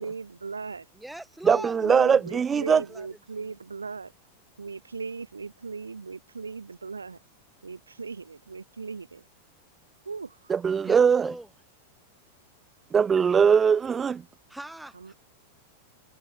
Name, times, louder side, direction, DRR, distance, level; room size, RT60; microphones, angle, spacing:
voice 1, 0.0-0.9 1.5-4.1 4.6-7.2 7.6-9.2 10.0-10.5 10.8-11.1 14.9-15.1, right 4 dB, 75° right, 1.0 m, -38 dB
voice 2, 0.9-1.8 2.5-2.6 2.9-3.1 10.8-11.5 14.5-15.1, right 1 dB, 5° right, 5.3 m, -41 dB
voice 3, 1.4-2.8 10.5-11.3 12.9-14.2, right 6 dB, 20° right, 0.4 m, -21 dB
figure-of-eight pair, 90°, 0 cm